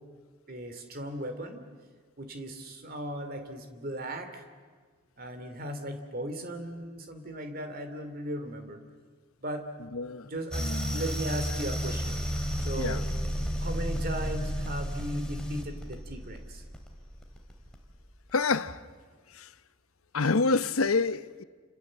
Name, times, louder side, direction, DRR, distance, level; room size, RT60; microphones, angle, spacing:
voice 1, 0.5-1.6 2.2-4.4 5.2-8.8 9.4-9.6 10.2-12.2 12.6-13.0 13.6-16.6, right 1 dB, 45° right, 2.9 m, -37 dB
voice 2, 9.9-10.3 10.6-11.0 12.8-13.0 18.3-18.8 19.3-19.5 20.1-21.4, left 4 dB, 85° left, 0.9 m, -28 dB
sound 1, 10.5-18.0, equal, 5° left, 2.7 m, -33 dB
29.0 x 27.0 x 7.6 m
head